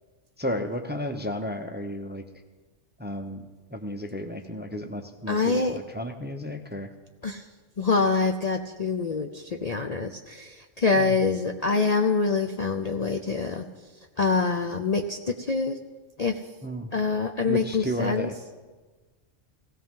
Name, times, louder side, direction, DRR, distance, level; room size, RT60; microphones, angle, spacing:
voice 1, 0.4-2.2 3.0-3.5 3.7-6.9 11.0-11.1 16.6-16.9 17.5-18.3, equal, 10° right, 6 dB, 0.6 m, -33 dB
voice 2, 5.3-5.8 7.2-7.4 7.8-13.7 14.2-15.8 16.2-16.4 16.9-18.3, left 4 dB, 45° left, 4 dB, 0.6 m, -25 dB
17.5 x 16.5 x 3.7 m, 1.3 s
omnidirectional pair, 1.3 m